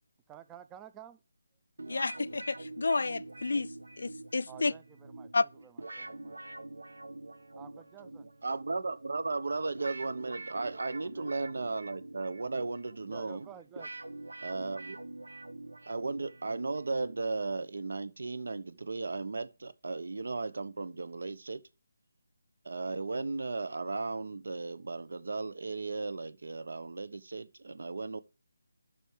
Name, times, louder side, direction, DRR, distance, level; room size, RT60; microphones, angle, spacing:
voice 1, 0.3-1.2 4.5-6.4 7.6-8.3 11.0-11.5 13.1-13.9, right 10 dB, 10° right, 0.4 m, -52 dB
sound 1, 1.8-17.7, right 2 dB, 90° right, 1.3 m, -46 dB
voice 2, 1.9-3.7 4.0-4.7 5.3-5.4, left 3 dB, 70° left, 0.4 m, -30 dB
voice 3, 8.4-13.5 14.4-15.0 15.9-21.6 22.6-28.2, right 3 dB, 70° right, 1.0 m, -35 dB
10.0 x 6.2 x 4.9 m
figure-of-eight pair, 165°, 0 cm